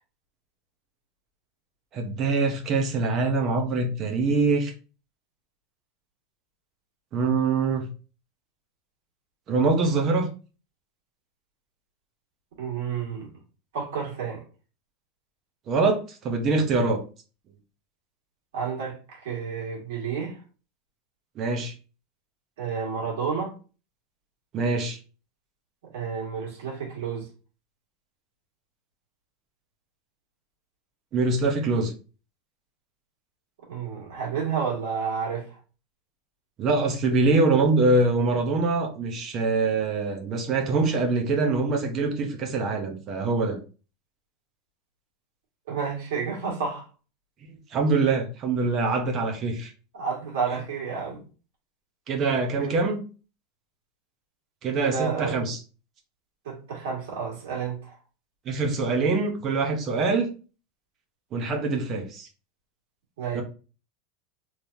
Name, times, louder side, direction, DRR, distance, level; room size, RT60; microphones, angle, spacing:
voice 1, 1.9-4.7 7.1-7.9 9.5-10.3 15.7-17.0 21.4-21.7 24.5-25.0 31.1-31.9 36.6-43.6 47.7-49.7 52.1-53.0 54.6-55.6 58.5-60.3 61.3-62.3 63.3-63.4, right 3 dB, 25° right, 0.7 m, -24 dB
voice 2, 12.6-13.3 13.7-14.4 18.5-20.4 22.6-23.6 25.9-27.3 33.7-35.6 45.7-46.9 49.9-51.2 52.6-52.8 54.8-55.4 56.5-58.0 63.2-63.4, right 6 dB, 85° right, 1.7 m, -30 dB
3.4 x 3.1 x 2.6 m
supercardioid pair, 175°, 0 cm